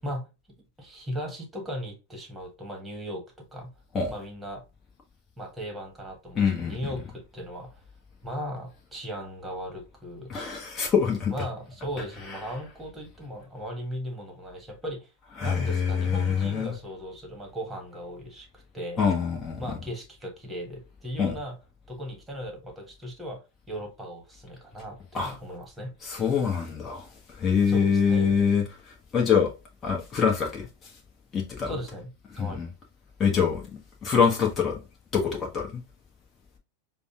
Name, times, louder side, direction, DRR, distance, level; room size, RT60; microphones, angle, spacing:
voice 1, 0.8-3.7 4.1-4.6 5.4-7.8 8.2-10.3 11.3-15.1 15.4-19.0 19.6-21.6 21.9-25.9 27.7-28.3 31.6-32.6, equal, 10° right, 1.5 m, -37 dB
voice 2, 6.3-6.8 10.3-11.3 12.3-12.4 15.4-16.7 19.0-19.8 21.2-21.3 25.1-25.3 26.0-29.5 29.8-30.9 31.3-31.7 32.3-32.7 33.2-33.7 34.0-34.8 35.1-35.8, left 6 dB, 25° left, 1.1 m, -25 dB
6.7 x 2.3 x 2.4 m
figure-of-eight pair, 90°, 0 cm